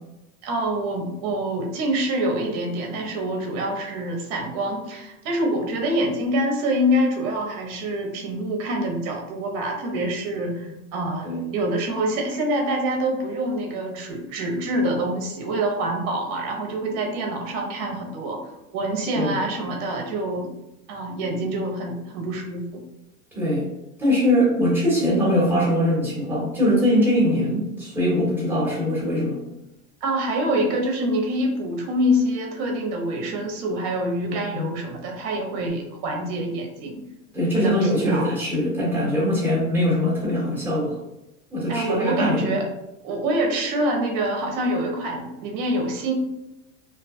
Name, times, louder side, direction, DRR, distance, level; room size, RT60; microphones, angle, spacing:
voice 1, 0.4-18.4 18.7-20.5 20.9-22.8 30.0-37.0 37.5-38.3 41.7-42.7 43.0-46.1, right 1 dB, 55° right, 2 dB, 0.7 m, -26 dB
voice 2, 23.3-23.7 24.0-29.4 34.3-34.7 37.3-40.9 41.5-42.5, equal, 5° right, -7 dB, 1.3 m, -22 dB
2.4 x 2.2 x 2.5 m, 0.93 s
supercardioid pair, 135°, 42 cm